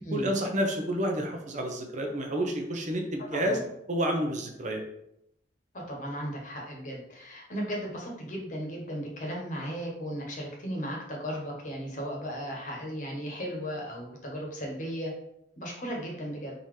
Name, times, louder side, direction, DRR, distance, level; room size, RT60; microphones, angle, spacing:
voice 1, 0.1-3.6 3.9-4.8, equal, 40° right, 2 dB, 0.7 m, -29 dB
voice 2, 5.7-15.1 15.6-16.5, equal, 45° left, -1 dB, 1.1 m, -36 dB
3.9 x 2.8 x 4.8 m, 0.79 s
head